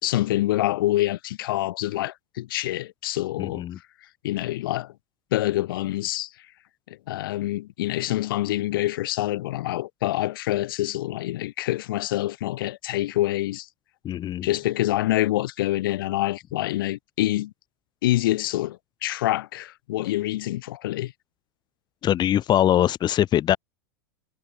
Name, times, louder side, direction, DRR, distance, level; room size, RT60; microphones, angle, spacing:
voice 1, 0.0-3.6 4.2-4.9 5.3-6.3 6.9-13.7 14.4-17.5 18.0-21.1, left 15 dB, 70° left, 5.0 m, -26 dB
voice 2, 3.4-3.8 14.0-14.5 22.0-23.6, left 11 dB, 40° left, 3.7 m, -22 dB
hypercardioid pair, 95°, 12 cm